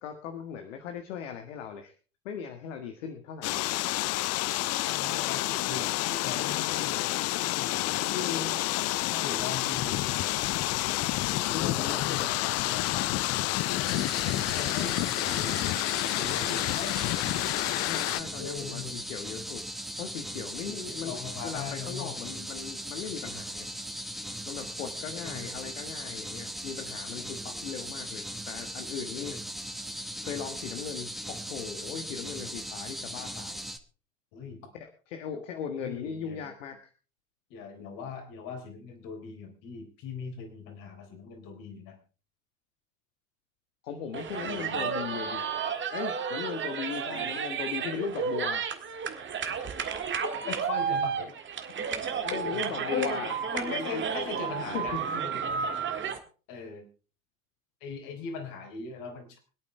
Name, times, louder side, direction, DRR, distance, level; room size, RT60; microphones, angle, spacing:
voice 1, 0.0-1.9 2.2-3.7 8.1-8.6 9.1-9.4 11.5-12.3 17.9-19.6 20.0-23.7 24.5-29.3 30.2-33.6 34.7-36.9 43.8-45.4 45.9-48.7 52.2-53.3 53.6-54.0 54.7-55.0, left 7 dB, 70° left, 5 dB, 1.7 m, -38 dB
sound 1, 3.4-18.2, left 17 dB, 40° left, 0.6 m, -29 dB
voice 2, 4.8-7.0 7.6-8.1 9.2-10.4 11.2-13.9 14.6-17.0 18.4-19.0 20.7-22.3 25.2-25.8 27.2-27.7 29.2-29.4 34.3-34.7 35.8-36.5 37.5-42.0 44.4-44.9 47.0-47.3 49.5-49.6 50.4-51.3 52.3-52.5 52.8-53.2 53.5-55.7 56.5-56.9 57.8-59.4, left 5 dB, 55° left, 5 dB, 3.9 m, -40 dB
sound 2, 13.8-33.8, equal, ahead, 1.2 m, -38 dB
sound 3, 44.1-56.2, right 7 dB, 30° right, 1.8 m, -32 dB
25.0 x 8.8 x 3.3 m, 0.36 s
hypercardioid pair, 85°, 39 cm